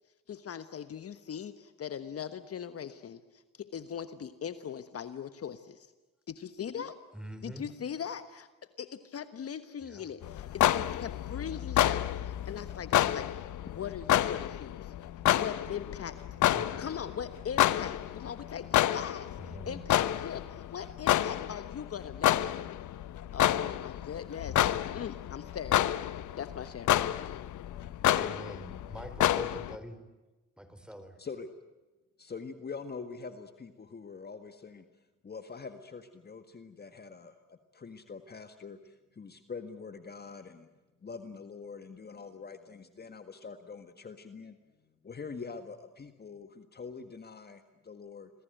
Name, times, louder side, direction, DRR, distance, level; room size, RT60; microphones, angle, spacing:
voice 1, 0.3-5.9 6.3-6.9 7.4-8.5 8.8-13.4 13.7-14.9 15.3-16.5 16.8-19.3 19.7-22.4 23.3-25.8 26.4-26.9, left 8 dB, 50° left, 11 dB, 1.3 m, -40 dB
voice 2, 7.1-7.7 9.8-10.1 16.4-16.8 19.4-19.8 28.1-30.0 30.6-31.2, equal, 5° right, 10 dB, 4.1 m, -44 dB
sound 1, 10.2-29.8, left 13 dB, 75° left, 1.0 m, -29 dB
voice 3, 32.2-34.9 35.2-40.7 41.0-44.6 45.0-48.3, left 5 dB, 35° left, 8 dB, 1.8 m, -44 dB
27.5 x 21.5 x 9.2 m, 1.1 s
cardioid pair, 90°, 30 cm